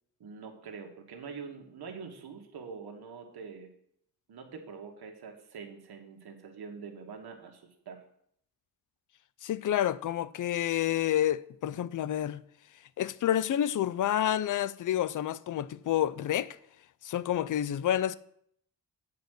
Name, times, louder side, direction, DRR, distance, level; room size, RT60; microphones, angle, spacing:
voice 1, 0.2-3.7 4.3-8.0, right 5 dB, 70° right, 1.5 m, -45 dB
voice 2, 9.4-12.4 13.0-16.6 17.0-18.2, left 11 dB, 55° left, 0.4 m, -29 dB
8.3 x 4.8 x 6.3 m
cardioid pair, 85°, 39 cm